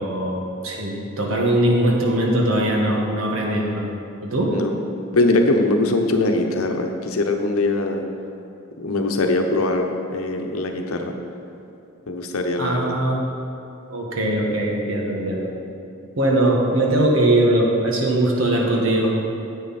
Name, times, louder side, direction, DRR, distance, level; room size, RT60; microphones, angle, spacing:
voice 1, 0.0-3.8 4.2-4.5 12.6-13.2 13.9-15.5 16.1-19.2, right 1 dB, 75° right, -1 dB, 1.5 m, -20 dB
voice 2, 5.1-8.0 8.8-11.1 12.1-12.9, left 2 dB, 90° left, 4 dB, 0.9 m, -21 dB
9.7 x 8.1 x 4.2 m, 2.7 s
head